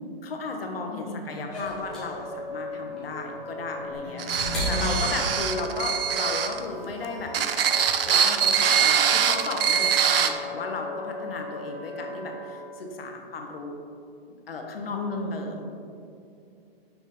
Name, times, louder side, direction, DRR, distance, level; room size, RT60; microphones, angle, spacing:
voice 1, 0.2-4.3 4.7-7.7 8.0-13.8 14.3-15.7, left 3 dB, 65° left, 2 dB, 1.2 m, -34 dB
voice 2, 1.0-1.5 4.0-4.9 14.8-15.4, left 3 dB, 40° left, -1 dB, 0.6 m, -35 dB
sound 1, 1.5-5.8 7.0-7.1, equal, ahead, 1.1 m, -33 dB
Wind instrument woodwind instrument, 1.7-12.6, left 1 dB, 20° right, 0.9 m, -38 dB
sound 2, 4.2-6.6 7.3-10.3, right 8 dB, 65° right, 0.6 m, -23 dB
5.9 x 5.9 x 4.2 m, 2.6 s
hypercardioid pair, 175°, 31 cm